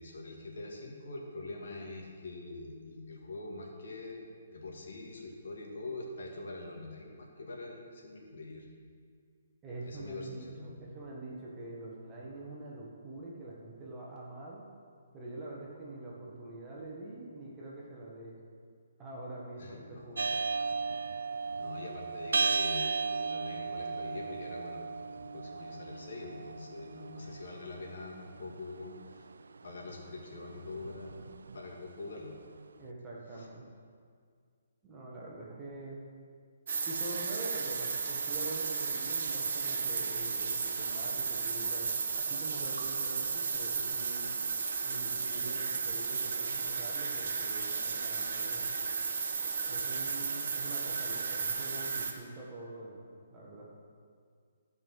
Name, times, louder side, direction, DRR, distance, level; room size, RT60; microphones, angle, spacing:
voice 1, 0.0-4.2 4.5-8.7 9.9-10.9 19.6-20.2 21.6-24.8 25.1-29.2 29.6-31.2 31.5-32.4 33.3-33.5, left 2 dB, 70° left, -1 dB, 2.3 m, -44 dB
voice 2, 9.6-14.6 15.1-18.4 19.0-20.4 32.8-33.6 34.8-36.0 36.9-41.9 42.2-44.3 44.8-48.7 49.7-53.7, right 2 dB, 15° right, -5 dB, 1.7 m, -45 dB
sound 1, 20.2-32.3, right 4 dB, 90° right, 0.3 m, -36 dB
sound 2, 36.7-52.1, right 5 dB, 65° right, 1.2 m, -34 dB
14.5 x 5.5 x 5.6 m, 2.1 s
hypercardioid pair, 160°, 0 cm